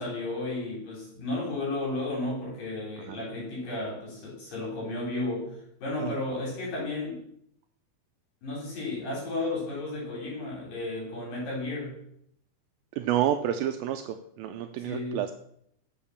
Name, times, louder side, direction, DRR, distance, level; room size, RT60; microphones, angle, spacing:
voice 1, 0.0-7.2 8.4-12.0 14.8-15.2, left 2 dB, 60° left, -3 dB, 5.4 m, -33 dB
voice 2, 12.9-15.3, right 11 dB, 85° right, 7 dB, 2.0 m, -29 dB
7.4 x 7.2 x 7.1 m, 0.72 s
omnidirectional pair, 4.5 m